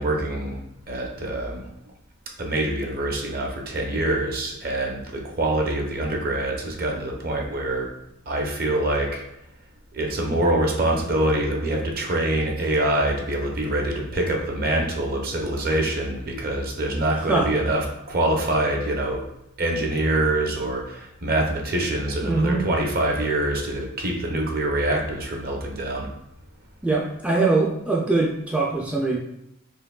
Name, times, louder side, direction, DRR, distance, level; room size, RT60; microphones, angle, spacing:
voice 1, 0.0-1.7 2.4-7.9 8.3-9.2 9.9-19.2 19.6-26.1, right 1 dB, 50° right, 1 dB, 0.7 m, -25 dB
voice 2, 17.2-17.5 22.2-22.7 26.8-29.2, right 3 dB, 5° right, -3 dB, 0.3 m, -22 dB
4.5 x 2.9 x 2.3 m, 0.85 s
head